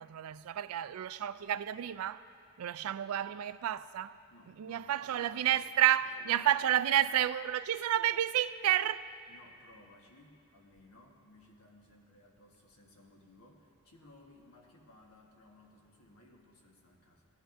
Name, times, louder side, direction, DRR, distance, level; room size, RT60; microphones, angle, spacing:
voice 1, 0.0-2.2 2.6-4.2 4.6-9.1, right 11 dB, 75° right, 0.3 m, -30 dB
voice 2, 4.3-5.7 6.0-6.4 9.3-17.3, left 1 dB, 80° left, 1.4 m, -60 dB
17.0 x 11.5 x 2.6 m
head